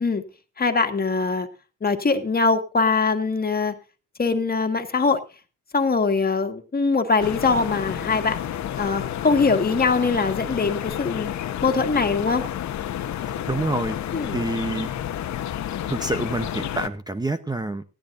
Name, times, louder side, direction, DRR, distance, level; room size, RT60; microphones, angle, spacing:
voice 1, 0.6-1.5 1.8-3.7 4.2-5.2 5.7-8.4 8.8-11.3 11.6-12.4 14.1-14.4, left 4 dB, 30° left, 7 dB, 1.9 m, -22 dB
sound 1, 7.2-16.9, left 11 dB, 65° left, 1.1 m, -30 dB
voice 2, 13.5-14.0 14.3-14.9 15.9-17.8, right 2 dB, 15° right, 9 dB, 0.9 m, -27 dB
19.0 x 14.0 x 2.7 m, 0.32 s
cardioid pair, 90°, 30 cm